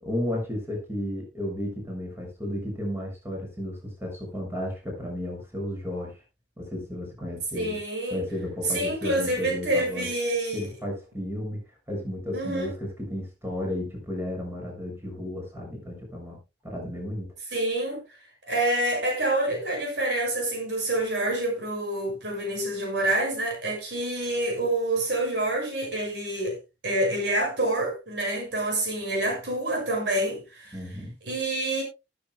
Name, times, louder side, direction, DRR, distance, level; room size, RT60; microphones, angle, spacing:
voice 1, 0.0-6.2 6.6-7.8 8.1-10.1 10.5-16.4 16.6-17.3 30.7-31.1, left 1 dB, 15° right, 7.0 m, -33 dB
voice 2, 7.5-8.2 8.7-10.7 12.3-12.7 17.5-18.0 18.5-26.6 26.8-30.8 31.2-31.8, right 1 dB, 70° right, 6.1 m, -27 dB
19.5 x 8.9 x 2.2 m
head